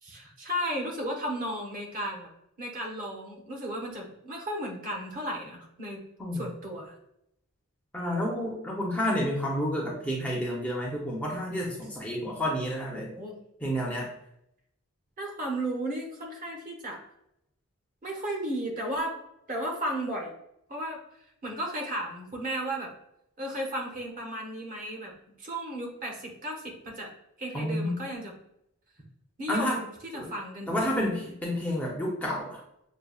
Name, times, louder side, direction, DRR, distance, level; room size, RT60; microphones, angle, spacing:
voice 1, 0.0-2.3 2.6-6.0 6.3-6.9 12.9-13.4 15.2-17.0 18.0-19.2 19.5-20.3 20.7-21.0 21.4-22.9 23.4-25.1 25.4-27.1 27.4-28.3 29.4-31.0, right 1 dB, 40° right, 0 dB, 0.9 m, -34 dB
voice 2, 7.9-13.1 13.6-14.1 27.5-28.0 29.5-29.8 30.1-30.3 30.7-32.6, equal, 5° left, -4 dB, 0.6 m, -30 dB
6.6 x 2.2 x 2.3 m, 0.79 s
head